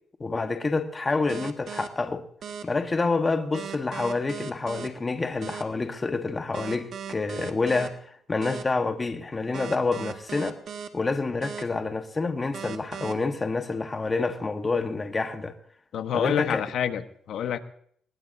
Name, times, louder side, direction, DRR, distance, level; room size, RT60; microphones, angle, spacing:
voice 1, 0.2-2.2 2.6-10.6 10.9-15.5 16.1-16.6, left 3 dB, 25° left, 1.3 m, -28 dB
sound 1, 1.3-1.9 2.4-2.6 3.5-4.9 5.4-5.6 6.5-7.9 8.4-8.6 9.5-10.9 11.4-11.6 12.5-13.1, right 7 dB, 65° right, 1.8 m, -37 dB
voice 2, 15.9-17.6, left 9 dB, 70° left, 1.2 m, -27 dB
21.5 x 20.5 x 2.7 m
cardioid pair, 90°, 0 cm